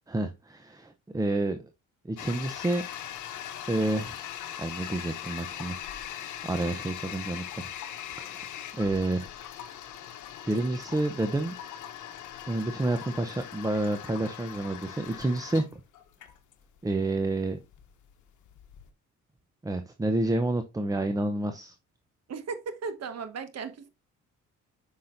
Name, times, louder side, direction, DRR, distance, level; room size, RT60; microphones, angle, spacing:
voice 1, 0.1-1.6 2.0-2.8 3.6-4.2 4.6-5.8 6.4-7.4 8.1-8.5 8.7-9.3 10.4-11.5 12.5-15.8 16.8-17.6 19.6-21.7, right 2 dB, 10° right, 0.6 m, -29 dB
Toilet flush, 2.2-18.9, left 10 dB, 80° left, 0.9 m, -41 dB
voice 2, 22.3-23.9, right 5 dB, 55° right, 1.3 m, -36 dB
7.6 x 5.6 x 2.6 m
cardioid pair, 90°, 30 cm